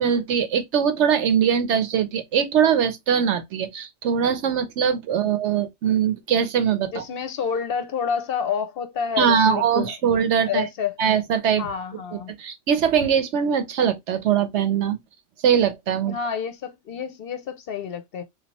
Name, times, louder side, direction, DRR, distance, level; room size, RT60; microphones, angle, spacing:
voice 1, 0.0-7.0 9.2-10.7 11.0-11.7 12.1-15.0 15.4-16.2, right 8 dB, 75° right, 1.0 m, -22 dB
voice 2, 6.9-9.9 10.4-10.9 11.6-12.3 16.1-18.2, left 7 dB, 60° left, 0.7 m, -28 dB
3.5 x 2.6 x 2.9 m
omnidirectional pair, 1.2 m